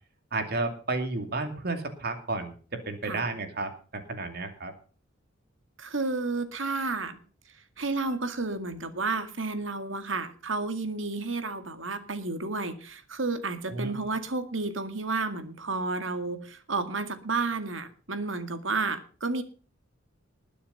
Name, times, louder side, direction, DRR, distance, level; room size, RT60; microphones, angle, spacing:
voice 1, 0.3-2.5 2.9-3.7 4.1-4.7 13.7-14.0, right 3 dB, 55° right, 6 dB, 2.6 m, -32 dB
voice 2, 5.8-7.2 7.8-19.4, right 3 dB, 70° right, 8 dB, 2.1 m, -31 dB
20.5 x 7.0 x 5.5 m, 0.40 s
head